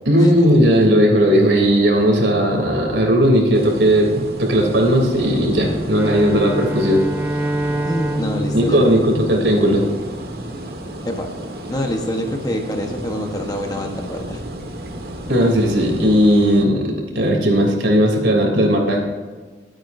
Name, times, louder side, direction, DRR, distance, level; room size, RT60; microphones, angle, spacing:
voice 1, 0.0-7.1 8.5-9.8 15.3-19.0, equal, 80° right, 0 dB, 3.1 m, -16 dB
sound 1, 3.5-16.6, right 1 dB, 55° right, 1.6 m, -33 dB
Bowed string instrument, 5.9-10.1, right 1 dB, 10° right, 0.5 m, -26 dB
voice 2, 7.8-8.9 11.0-11.3 11.7-14.4, left 1 dB, 20° left, 3 dB, 1.1 m, -25 dB
23.0 x 8.9 x 2.7 m, 1.4 s
head